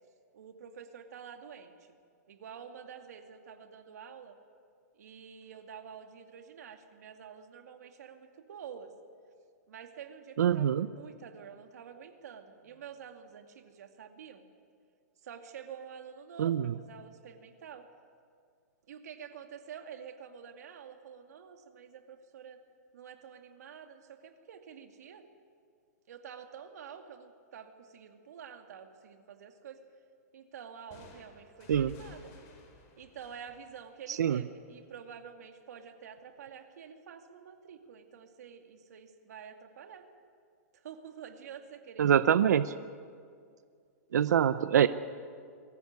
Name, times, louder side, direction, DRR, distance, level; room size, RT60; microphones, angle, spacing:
voice 1, 0.3-2.0 2.3-4.4 4.9-8.9 9.7-14.4 15.2-17.9 18.9-22.6 22.9-25.3 26.1-29.8 30.3-32.3 33.0-40.1 40.8-42.6, right 7 dB, 70° right, 5 dB, 2.4 m, -48 dB
voice 2, 10.4-10.9 16.4-16.7 31.7-32.0 34.1-34.4 42.0-42.7 44.1-44.9, right 9 dB, 85° right, 13 dB, 0.6 m, -25 dB
sound 1, 30.9-34.6, left 3 dB, 35° left, 4.2 m, -54 dB
23.0 x 14.0 x 9.6 m, 2.2 s
hypercardioid pair, 165°, 9 cm